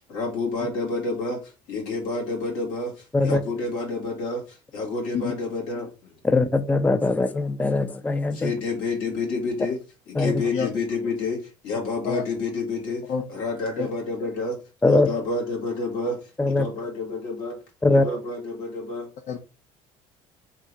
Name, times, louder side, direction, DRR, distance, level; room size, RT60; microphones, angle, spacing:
voice 1, 0.1-6.2 8.3-9.8 10.1-13.0 13.3-14.6 14.8-17.6 17.9-19.1, left 3 dB, 75° left, 0 dB, 2.0 m, -29 dB
voice 2, 5.1-5.3 10.5-10.7 12.0-12.2 13.1-13.2 13.8-13.9 19.3-19.4, left 7 dB, 60° left, 5 dB, 0.7 m, -27 dB
voice 3, 6.2-8.5 10.2-10.3 14.8-15.1 16.4-16.7 17.8-18.1, left 2 dB, 10° left, 10 dB, 0.4 m, -21 dB
3.7 x 2.7 x 4.5 m, 0.32 s
supercardioid pair, 90°, 14 cm